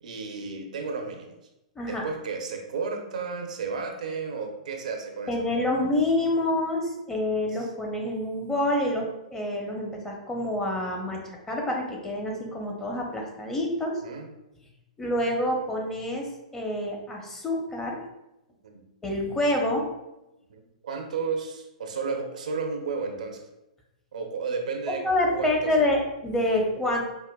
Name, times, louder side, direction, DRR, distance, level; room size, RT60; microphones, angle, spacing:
voice 1, 0.0-1.4 1.9-5.7 7.5-7.7 14.0-14.3 18.6-18.8 20.5-23.5 24.1-25.0 25.3-25.9, right 4 dB, 75° right, 3 dB, 0.6 m, -33 dB
voice 2, 1.8-2.1 5.3-11.2 11.5-14.0 15.0-16.3 16.5-18.0 19.0-19.8 25.0-27.0, left 1 dB, 15° left, 0 dB, 0.7 m, -27 dB
4.7 x 2.1 x 2.2 m, 0.93 s
hypercardioid pair, 115°, 4 cm